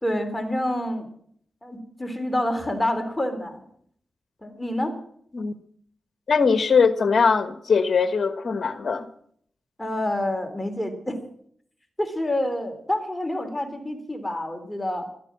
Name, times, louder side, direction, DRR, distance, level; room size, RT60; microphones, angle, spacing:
voice 1, 0.0-1.1 1.6-3.7 4.4-5.0 9.8-11.2 12.0-15.1, left 1 dB, 15° left, 7 dB, 3.5 m, -27 dB
voice 2, 6.3-9.1, left 5 dB, 60° left, 12 dB, 1.3 m, -21 dB
12.5 x 12.0 x 7.4 m, 0.63 s
cardioid pair, 45°, 0 cm